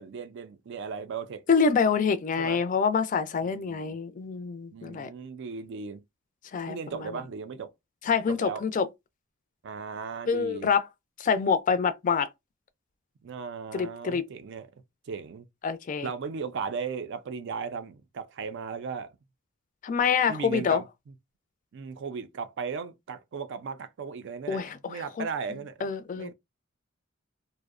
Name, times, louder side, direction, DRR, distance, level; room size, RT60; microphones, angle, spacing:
voice 1, 0.0-1.4 2.4-2.6 3.4-4.0 4.7-6.0 6.7-7.7 8.3-8.6 9.6-10.7 13.2-14.7 15.1-15.5 16.0-19.1 20.3-21.1 21.7-25.9 26.1-26.3, right 5 dB, 60° right, 0.4 m, -36 dB
voice 2, 1.5-5.1 6.5-6.8 8.1-8.9 10.3-10.8 11.2-12.3 13.7-14.2 15.6-16.1 19.8-20.8 24.5-25.2 25.5-26.3, left 6 dB, 40° left, 0.4 m, -26 dB
2.5 x 2.0 x 2.4 m
head